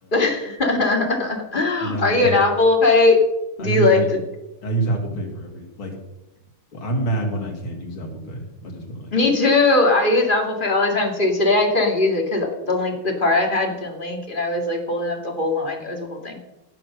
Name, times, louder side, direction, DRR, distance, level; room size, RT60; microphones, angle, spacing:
voice 1, 0.1-3.2 3.6-4.2 9.1-16.4, left 2 dB, 25° left, 2 dB, 2.3 m, -20 dB
voice 2, 1.8-2.4 3.6-4.1 4.6-6.0 6.7-9.1, right 2 dB, 85° left, 1 dB, 3.5 m, -27 dB
16.5 x 6.7 x 6.6 m, 0.96 s
omnidirectional pair, 2.3 m